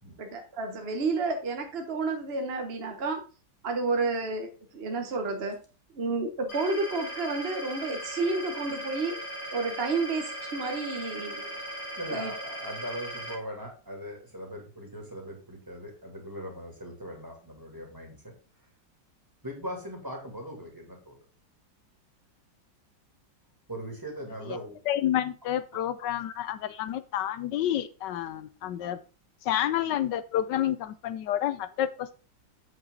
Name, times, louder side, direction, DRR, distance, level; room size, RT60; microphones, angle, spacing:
voice 1, 0.2-3.2 3.6-5.6 5.9-9.2 9.5-11.6 12.1-12.3, right 3 dB, 40° right, 4 dB, 1.0 m, -30 dB
sound 1, 6.5-13.3, right 1 dB, 25° left, 2.6 m, -38 dB
voice 2, 12.0-18.3 19.4-21.2 23.7-24.8 25.7-25.8, equal, 10° right, 0 dB, 2.7 m, -40 dB
voice 3, 24.9-29.0 29.5-32.1, left 11 dB, 75° left, 13 dB, 1.2 m, -29 dB
7.8 x 6.1 x 3.9 m, 0.35 s
omnidirectional pair, 2.0 m